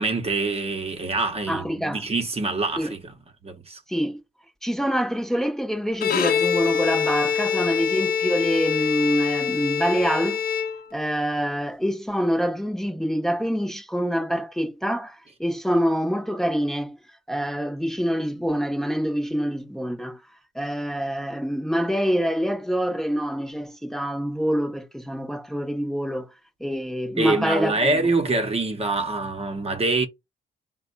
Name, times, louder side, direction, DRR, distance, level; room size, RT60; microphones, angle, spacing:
voice 1, 0.0-3.0 3.4-3.8 27.2-30.1, right 3 dB, 30° right, 1.0 m, -25 dB
voice 2, 1.5-2.0 2.8-2.9 3.9-4.2 4.6-10.4 10.9-17.0 17.3-20.2 20.5-26.3 26.6-28.1, equal, ahead, 1.0 m, -26 dB
Bowed string instrument, 5.9-11.2, left 7 dB, 50° left, 0.7 m, -25 dB
4.0 x 2.3 x 4.0 m
cardioid pair, 90°, 20 cm